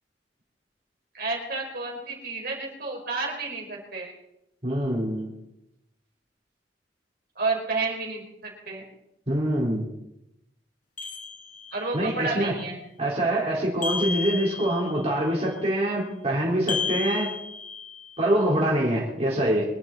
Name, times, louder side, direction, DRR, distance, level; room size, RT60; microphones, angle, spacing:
voice 1, 1.1-4.1 7.3-8.8 11.7-12.8, right 3 dB, 55° right, -1 dB, 4.9 m, -31 dB
voice 2, 4.6-5.3 9.3-9.8 11.9-12.5 13.0-17.3 18.2-19.6, right 1 dB, 35° right, -5 dB, 3.9 m, -25 dB
sound 1, 11.0-12.0 13.8-15.1 16.7-18.2, left 5 dB, 50° left, 4.5 m, -32 dB
25.0 x 11.0 x 4.5 m, 0.86 s
head